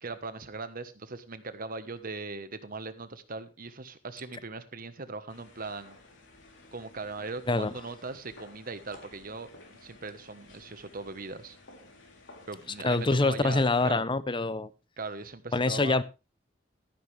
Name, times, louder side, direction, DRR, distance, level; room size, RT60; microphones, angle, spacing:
voice 1, 0.0-6.0 6.7-9.5 9.8-11.6 12.5-14.1 15.0-16.0, right 3 dB, 45° right, 1.2 m, -39 dB
sound 1, 5.3-13.9, left 2 dB, 70° left, 3.4 m, -53 dB
voice 2, 12.8-14.7 15.5-16.0, left 3 dB, 25° left, 0.7 m, -25 dB
13.5 x 11.0 x 3.4 m
head